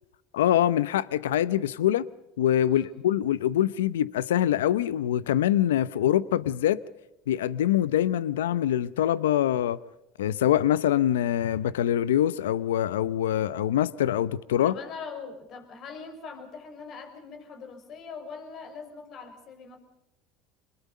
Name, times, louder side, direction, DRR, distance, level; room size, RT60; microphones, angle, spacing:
voice 1, 0.3-2.1 2.4-6.8 7.3-9.8 10.2-14.7, left 11 dB, 90° left, 0.7 m, -24 dB
voice 2, 14.6-19.8, left 5 dB, 50° left, 5.5 m, -42 dB
26.5 x 21.0 x 5.4 m
hypercardioid pair, 85°, 0 cm